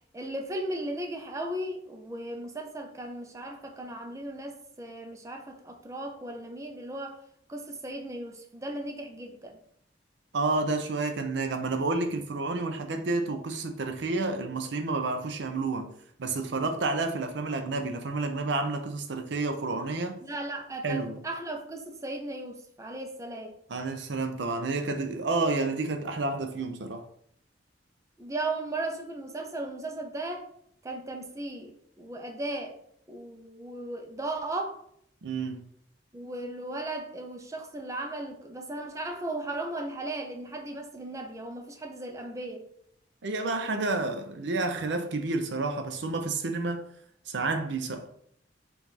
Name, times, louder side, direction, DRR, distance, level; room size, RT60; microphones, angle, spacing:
voice 1, 0.1-7.2 7.5-9.6 20.3-23.5 28.2-30.5 30.8-32.7 33.1-34.8 36.1-42.6, right 2 dB, 15° right, 0.6 m, -36 dB
voice 2, 10.3-15.9 16.2-20.2 20.8-21.2 23.7-27.1 35.2-35.6 43.2-46.9 47.3-48.1, right 3 dB, 70° right, 0.5 m, -30 dB
4.5 x 2.5 x 4.0 m
head